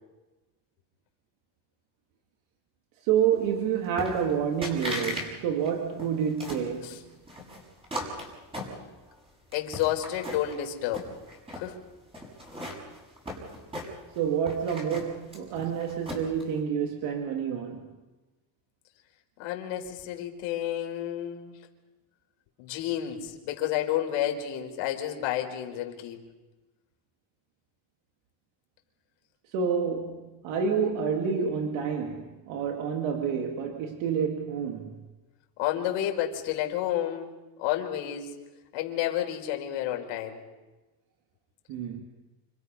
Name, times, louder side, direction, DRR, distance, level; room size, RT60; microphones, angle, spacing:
voice 1, 3.0-7.1 14.2-17.9 29.5-34.9 41.7-42.0, right 7 dB, 70° right, 2.7 m, -28 dB
sound 1, 4.0-4.3 4.6-5.3 5.6-6.7 7.3-9.1 9.5-10.6 10.9-11.7 12.1-14.2 14.5-16.4, left 1 dB, 10° right, 6.8 m, -37 dB
voice 2, 9.5-11.1 11.5-11.8 19.4-21.6 22.6-26.2 35.6-37.3 37.6-38.4 38.7-40.4, left 11 dB, 85° left, 4.7 m, -30 dB
30.0 x 27.5 x 5.6 m
cardioid pair, 175°, 48 cm